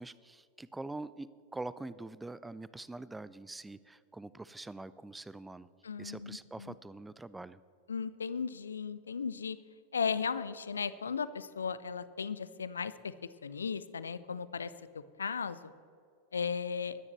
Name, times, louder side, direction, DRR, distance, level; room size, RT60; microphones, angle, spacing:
voice 1, 0.0-5.7 6.0-7.6, right 2 dB, 5° right, 17 dB, 0.4 m, -44 dB
voice 2, 5.8-6.7 7.9-9.6 9.9-13.1 13.4-15.7 16.3-17.0, left 6 dB, 70° left, 15 dB, 0.5 m, -36 dB
22.0 x 9.7 x 3.2 m, 2.4 s
figure-of-eight pair, 90°, 0 cm